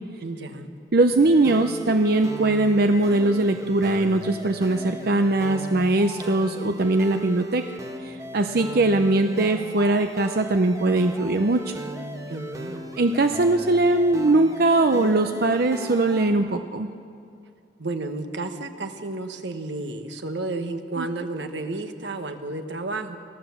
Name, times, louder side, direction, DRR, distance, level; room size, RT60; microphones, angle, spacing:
voice 1, 0.2-0.7 12.3-12.9 17.8-23.2, right 2 dB, 85° right, 7 dB, 1.4 m, -32 dB
voice 2, 0.9-7.6 8.0-11.7 13.0-16.9 21.0-21.1, right 2 dB, 60° right, 7 dB, 0.7 m, -21 dB
sound 1, 1.2-16.3, right 1 dB, 20° right, 1.3 m, -37 dB
24.0 x 16.0 x 7.2 m, 2.4 s
head